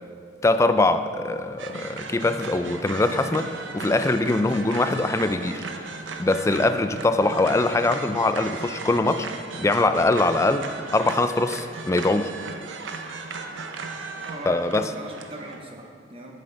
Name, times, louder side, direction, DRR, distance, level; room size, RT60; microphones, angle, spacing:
voice 1, 0.4-3.5 3.7-5.6 6.2-9.3 9.6-12.3 14.5-14.9, left 2 dB, 15° left, 10 dB, 0.3 m, -22 dB
sound 1, 1.6-15.6, right 4 dB, 85° right, 0.7 m, -36 dB
sound 2, 2.6-6.3 6.7-7.4, left 2 dB, 45° left, 0.8 m, -46 dB
voice 2, 14.2-16.3, right 1 dB, 30° right, 1 dB, 1.1 m, -40 dB
12.5 x 7.5 x 3.4 m, 2.4 s
head